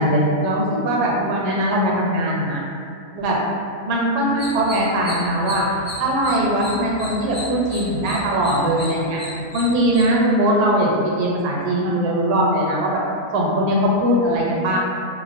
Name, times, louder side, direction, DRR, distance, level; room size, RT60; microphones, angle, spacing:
voice 1, 0.0-2.6 3.1-3.4 3.8-5.6 6.0-9.2 9.5-13.0 13.3-14.8, right 1 dB, 85° right, -3 dB, 1.1 m, -20 dB
sound 1, 4.3-10.1, left 1 dB, 60° left, 0.5 m, -35 dB
2.6 x 2.1 x 2.5 m, 2.4 s
omnidirectional pair, 1.7 m